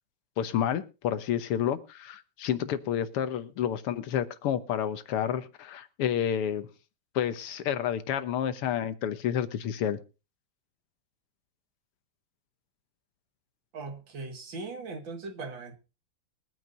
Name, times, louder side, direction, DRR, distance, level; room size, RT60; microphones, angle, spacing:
voice 1, 0.4-6.7 7.2-10.0, left 9 dB, 90° left, 11 dB, 2.0 m, -30 dB
voice 2, 13.7-15.8, right 3 dB, 60° right, 6 dB, 2.6 m, -39 dB
23.0 x 9.3 x 2.6 m, 0.31 s
omnidirectional pair, 2.4 m